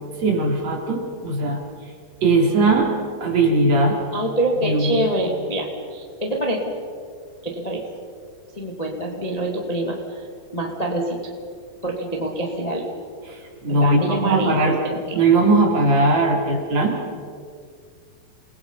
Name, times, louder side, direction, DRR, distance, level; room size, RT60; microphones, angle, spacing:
voice 1, 0.2-1.6 2.2-2.9 3.2-4.0 4.6-5.1 13.3-14.8 15.1-17.0, right 2 dB, 50° right, 0 dB, 4.2 m, -19 dB
voice 2, 4.1-6.6 7.4-7.8 8.5-10.2 10.5-11.2 11.8-12.8 13.7-14.6 14.8-15.2, right 1 dB, 15° left, 0 dB, 1.6 m, -25 dB
29.5 x 21.0 x 5.6 m, 2.1 s
omnidirectional pair, 4.3 m